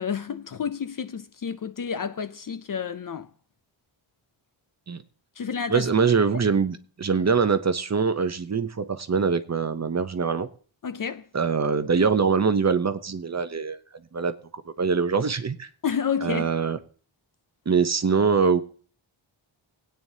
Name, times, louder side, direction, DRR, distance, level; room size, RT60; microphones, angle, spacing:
voice 1, 0.0-3.3 5.4-5.9 10.8-11.3 15.8-16.5, left 7 dB, 45° left, 0.5 m, -30 dB
voice 2, 5.7-10.5 11.3-13.8 14.1-14.3 14.8-15.7 16.2-16.8 17.7-18.6, right 5 dB, 35° right, 0.7 m, -23 dB
21.5 x 9.0 x 2.7 m
wide cardioid pair, 165°, 49 cm